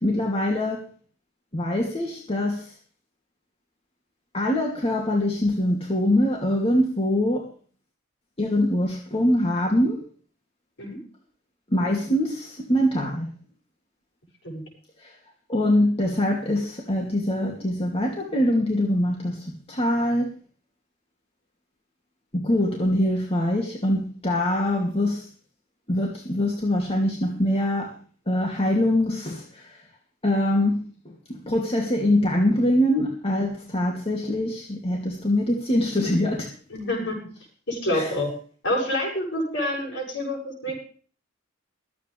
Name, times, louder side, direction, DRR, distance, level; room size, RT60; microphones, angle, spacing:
voice 1, 0.0-0.9 1.5-2.7 4.3-7.5 8.4-10.0 11.7-13.3 15.0-15.2 15.5-20.3 22.3-25.3 25.9-28.0 28.3-29.8 30.2-36.5 37.9-38.1, left 1 dB, 30° left, 0 dB, 2.7 m, -24 dB
voice 2, 36.7-37.2 37.7-38.3 38.6-40.7, left 1 dB, 65° left, 0 dB, 7.8 m, -27 dB
23.5 x 9.2 x 3.5 m, 0.43 s
head